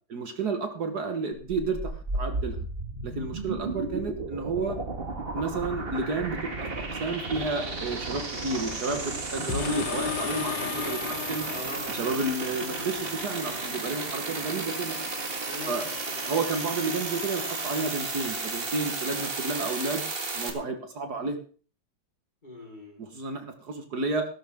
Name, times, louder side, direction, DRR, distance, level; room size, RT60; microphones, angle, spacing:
voice 1, 0.1-2.6 3.0-4.8 5.3-6.5 6.8-11.0 11.3-11.4 11.9-15.0 15.7-15.9 16.3-20.0 20.3-21.4 23.0-24.3, right 3 dB, 60° right, 6 dB, 2.0 m, -31 dB
sound 1, 1.3-20.5, right 3 dB, 35° right, 1.9 m, -33 dB
sound 2, 9.5-12.4 12.9-13.0, left 10 dB, 85° left, 1.6 m, -34 dB
voice 2, 11.4-12.0 12.4-12.7 15.4-16.6 22.4-23.1, left 2 dB, 25° left, -1 dB, 4.6 m, -43 dB
15.5 x 13.0 x 3.7 m, 0.39 s
omnidirectional pair, 1.9 m